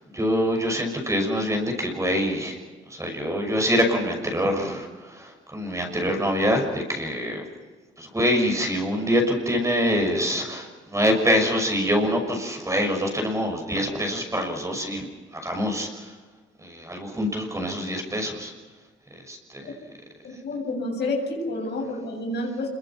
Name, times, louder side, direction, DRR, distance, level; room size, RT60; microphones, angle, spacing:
voice 1, 0.1-2.6 2.9-7.4 8.0-15.1 15.3-16.1 16.6-18.5 19.2-19.7, equal, 15° right, 3 dB, 6.2 m, -25 dB
voice 2, 20.2-22.7, left 2 dB, 60° left, 2 dB, 7.4 m, -29 dB
26.5 x 23.0 x 6.0 m, 1.4 s
cardioid pair, 90°, 20 cm